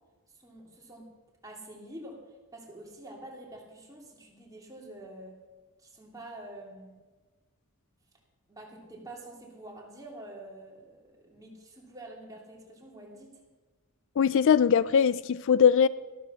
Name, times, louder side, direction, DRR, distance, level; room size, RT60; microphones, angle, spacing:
voice 1, 0.3-1.1 1.4-2.2 2.5-5.4 5.8-6.9 8.5-13.3, right 1 dB, 15° right, -1 dB, 2.9 m, -47 dB
voice 2, 14.2-15.9, left 7 dB, 60° left, 18 dB, 0.4 m, -21 dB
13.0 x 13.0 x 5.7 m, 1.3 s
head